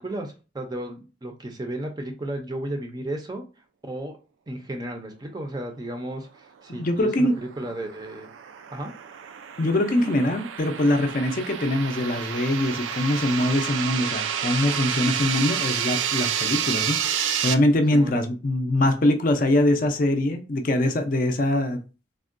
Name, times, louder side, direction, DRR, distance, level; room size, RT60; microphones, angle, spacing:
voice 1, 0.0-3.4 3.8-4.2 4.5-8.3 8.7-8.9 17.9-18.2, right 1 dB, 20° right, 0.4 m, -34 dB
voice 2, 6.7-7.4 9.6-21.8, left 1 dB, 45° left, 0.4 m, -23 dB
sound 1, 7.1-17.5, right 9 dB, 90° right, 0.3 m, -29 dB
3.5 x 2.1 x 2.4 m
head